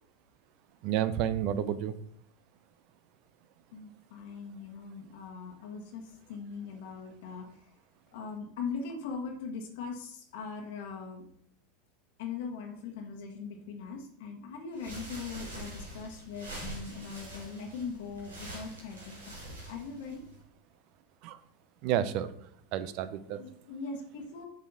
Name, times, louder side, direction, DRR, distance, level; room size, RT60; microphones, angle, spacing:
voice 1, 0.8-1.9 21.2-21.4 21.8-22.3 22.7-23.4, right 10 dB, 55° right, 14 dB, 0.6 m, -30 dB
voice 2, 3.7-7.5 8.1-11.2 12.2-19.4 19.7-20.2 23.4-24.5, left 5 dB, 65° left, 1 dB, 1.3 m, -40 dB
sound 1, 14.7-20.4, right 1 dB, 85° right, 2.5 m, -45 dB
7.1 x 6.4 x 4.0 m, 0.67 s
figure-of-eight pair, 85°, 0 cm